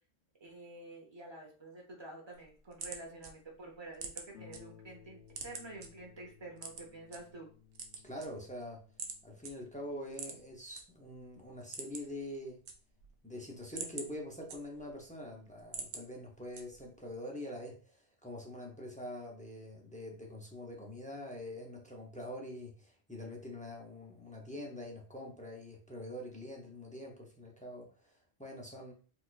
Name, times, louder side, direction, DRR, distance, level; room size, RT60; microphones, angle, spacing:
voice 1, 0.4-7.5, right 2 dB, 30° right, 0 dB, 0.8 m, -49 dB
sound 1, 2.3-4.6 5.0-5.9 6.6-7.2 7.6-8.6 9.0-9.2 9.4-9.5 10.1-10.8 11.2-11.3 11.6-12.2 12.5-13.1 13.5-15.0 15.4-16.0 16.5-17.0, right 5 dB, 85° right, 0.9 m, -44 dB
Harp, 4.3-13.5 14.4-14.5 14.9-15.0, left 9 dB, 70° left, 1.0 m, -61 dB
voice 2, 8.0-8.8 9.2-12.6 13.2-28.9, left 1 dB, 10° left, -1 dB, 0.5 m, -45 dB
4.1 x 2.4 x 2.4 m, 0.40 s
omnidirectional pair, 1.1 m